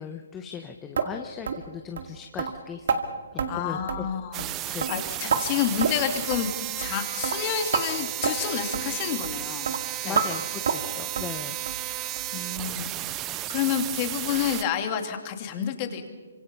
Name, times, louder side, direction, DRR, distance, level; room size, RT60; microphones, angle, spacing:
voice 1, 0.0-3.1 3.3-4.1 4.7-4.9 10.0-11.6, left 7 dB, 15° left, 4 dB, 1.0 m, -38 dB
sound 1, 1.0-1.1 1.5-1.6 2.0-2.1 2.4-2.5 2.9-3.0 3.4-3.5 3.9-4.1 4.4-4.5 4.8-5.4 5.8-6.0 6.3-6.5 6.8-7.0 7.2-7.4 7.7-7.9 8.2-8.4 8.7-8.9 9.2-9.4 9.7-9.8 10.2-10.3 10.7-10.9 11.2-11.3 11.7-11.8 12.2-12.3 12.7-12.8 13.2-13.3, right 6 dB, 60° right, 2.2 m, -27 dB
voice 2, 3.5-6.5 6.8-9.7 10.0-10.3 11.9-12.9 13.5-16.1, left 9 dB, 30° left, 5 dB, 2.6 m, -29 dB
sound 2, 4.3-14.6, right 15 dB, 20° right, 0.6 m, -33 dB
26.0 x 25.5 x 5.5 m, 1.5 s
hypercardioid pair, 155°, 0 cm